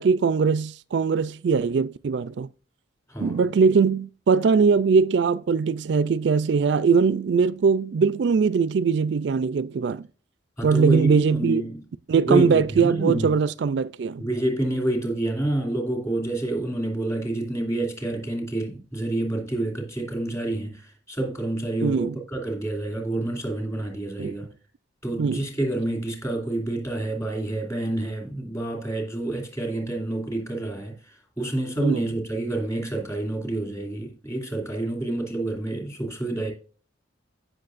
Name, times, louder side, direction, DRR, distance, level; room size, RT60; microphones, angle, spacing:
voice 1, 0.0-2.5 3.2-10.1 10.6-11.6 12.1-14.2 21.8-22.2 24.2-24.3 25.2-25.4 31.8-32.0, right 5 dB, 65° right, 0.3 m, -21 dB
voice 2, 3.1-3.4 10.6-11.8 12.3-13.4 14.2-24.5 25.0-30.9 31.4-36.5, right 1 dB, 15° left, 2.7 m, -28 dB
15.5 x 6.2 x 2.5 m
head